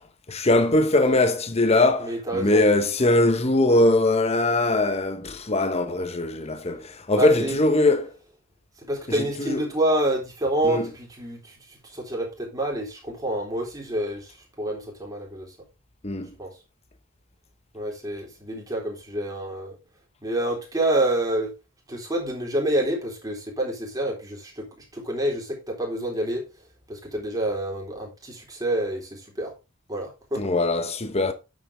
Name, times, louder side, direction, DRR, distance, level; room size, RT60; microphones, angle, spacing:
voice 1, 0.3-8.1 9.1-9.6 10.6-10.9 16.0-16.3 30.4-31.3, left 2 dB, 30° left, 1.0 m, -21 dB
voice 2, 2.0-2.6 7.1-7.6 8.8-14.3 14.6-15.5 16.4-16.5 17.7-19.8 20.2-21.5 21.9-24.7 24.9-26.4 26.9-29.5 29.9-30.4, right 1 dB, 15° right, 3.8 m, -28 dB
9.3 x 7.6 x 3.5 m
head